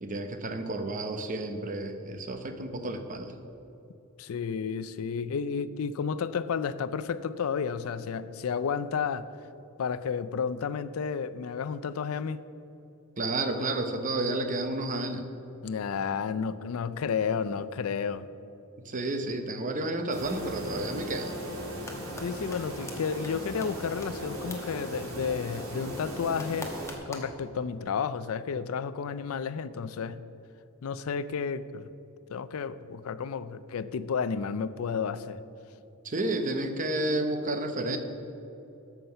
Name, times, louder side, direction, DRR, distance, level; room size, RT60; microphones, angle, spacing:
voice 1, 0.0-3.3 13.2-15.3 18.8-21.3 36.0-38.0, right 2 dB, 40° right, 7 dB, 0.8 m, -31 dB
voice 2, 4.2-9.3 9.8-12.4 15.6-18.3 22.2-26.7 27.1-30.2 30.8-31.9 32.3-35.4, left 6 dB, 80° left, 15 dB, 0.4 m, -32 dB
sound 1, 20.1-26.9, equal, 85° right, 2.4 m, -38 dB
sound 2, 21.9-22.3 22.5-22.6 22.9-23.0 23.2-23.3 23.6-23.7 24.0-24.1 24.5-24.6 26.4-27.4, left 3 dB, 15° left, 1.1 m, -41 dB
13.0 x 5.8 x 5.6 m, 2.9 s
head